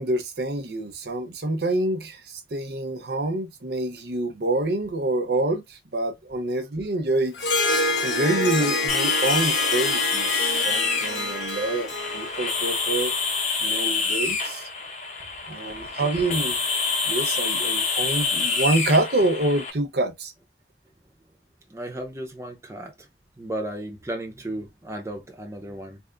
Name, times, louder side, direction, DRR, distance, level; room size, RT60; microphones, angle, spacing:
voice 1, 0.0-2.2 2.5-7.3 8.0-13.1 13.6-14.7 15.5-16.6 17.1-20.3, right 2 dB, 60° right, 0.8 m, -26 dB
Harp, 7.3-13.1, left 2 dB, 85° left, 1.2 m, -27 dB
sound 1, 8.9-19.7, left 4 dB, 40° left, 0.9 m, -27 dB
voice 2, 15.6-16.0 21.7-23.1 23.4-26.0, right 1 dB, 15° right, 0.6 m, -35 dB
3.5 x 2.0 x 3.7 m
head